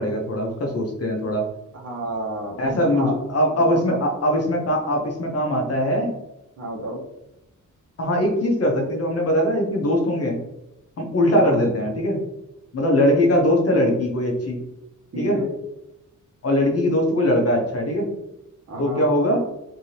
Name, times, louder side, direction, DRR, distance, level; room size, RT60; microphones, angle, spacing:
voice 1, 0.0-1.4 2.6-6.1 8.0-10.4 11.0-12.2 12.7-14.6 15.2-15.4 16.4-18.1 18.8-19.4, equal, 50° left, 1 dB, 0.8 m, -21 dB
voice 2, 1.7-3.2 3.6-4.0 6.6-7.0 11.3-11.6 15.1-15.5 18.7-19.1, right 1 dB, 50° right, -2 dB, 1.0 m, -31 dB
3.3 x 2.8 x 2.8 m, 0.91 s
wide cardioid pair, 135°, 32 cm